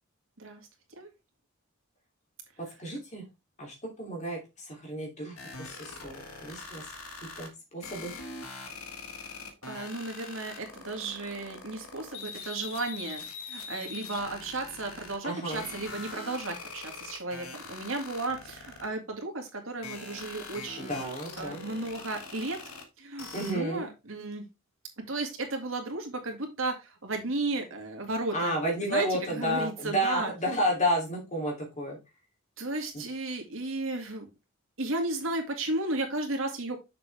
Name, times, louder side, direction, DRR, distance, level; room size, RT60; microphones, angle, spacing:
voice 1, 2.8-3.2 3.6-4.4 4.7-6.1 6.4-6.9 7.4-8.1 15.2-15.6 20.8-21.6 23.3-23.9 28.3-32.0 32.9-33.0, equal, 35° left, 0 dB, 2.9 m, -31 dB
sound 1, 5.4-7.5 7.8-15.2 15.5-18.8 19.8-22.8 23.2-23.5, left 4 dB, 90° left, 1.7 m, -42 dB
voice 2, 9.4-21.0 21.4-22.6 23.0-24.4 25.1-26.7 27.0-28.5 28.9-30.3 32.6-34.3 34.8-36.8, right 2 dB, 70° right, 3 dB, 2.2 m, -34 dB
6.7 x 6.5 x 3.4 m, 0.25 s
head